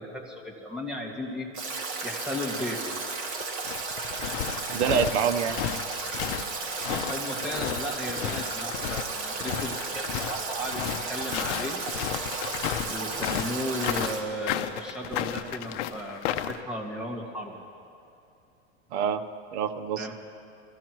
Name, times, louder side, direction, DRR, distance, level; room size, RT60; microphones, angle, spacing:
voice 1, 0.0-1.5 2.0-2.8 6.8-11.8 12.9-17.6 20.0-20.1, equal, ahead, -4 dB, 2.0 m, -35 dB
Stream / Drip / Trickle dribble, 1.5-14.2, right 3 dB, 35° right, 2.4 m, -34 dB
sound 1, 3.4-16.6, left 11 dB, 55° left, 0.8 m, -33 dB
voice 2, 4.7-5.6 18.9-19.2 19.5-20.1, right 8 dB, 65° right, 8 dB, 0.9 m, -26 dB
24.0 x 15.0 x 3.1 m, 2.7 s
supercardioid pair, 135°, 36 cm